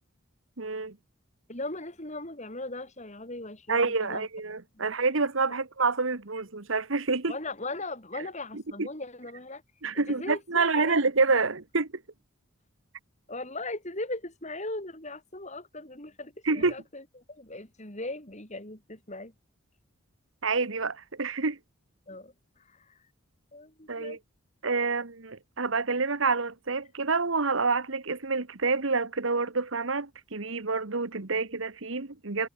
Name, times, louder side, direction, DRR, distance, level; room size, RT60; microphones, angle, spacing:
voice 1, 0.6-0.9 3.7-7.3 8.5-8.9 9.8-11.9 16.4-16.7 20.4-21.6 23.9-24.2 24.6-32.5, right 4 dB, 70° right, 1.5 m, -28 dB
voice 2, 1.5-4.3 4.8-5.0 5.5-5.6 7.3-9.6 10.1-11.0 13.3-17.0 17.3-19.3 22.1-22.3 22.7-23.0 23.5-24.2, left 2 dB, 35° left, 5.6 m, -38 dB
head